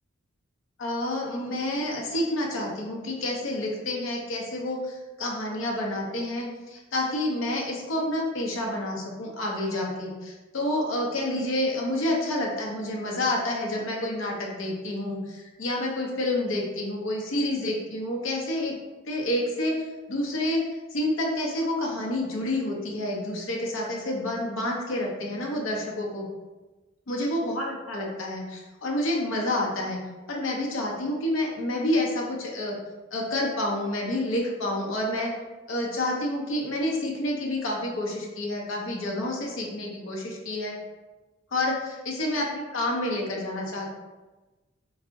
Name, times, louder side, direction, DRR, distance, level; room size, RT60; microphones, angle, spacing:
voice 1, 0.8-18.8 19.1-20.6 20.9-26.3 27.1-30.0 30.3-32.7 33.1-35.3 35.7-40.8 41.5-43.9, left 1 dB, 70° left, -1 dB, 0.6 m, -29 dB
2.5 x 2.0 x 3.6 m, 1.2 s
head